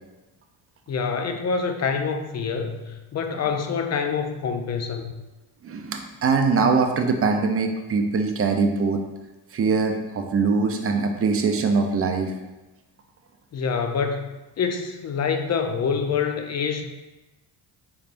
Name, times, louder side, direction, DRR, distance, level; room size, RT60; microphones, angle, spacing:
voice 1, 0.9-5.1 13.5-14.3 14.6-16.8, left 5 dB, 35° left, 6 dB, 0.5 m, -26 dB
voice 2, 5.6-9.0 9.5-12.3, right 4 dB, 30° right, 5 dB, 0.5 m, -22 dB
4.1 x 3.3 x 2.5 m, 1.1 s
supercardioid pair, 70°, 45 cm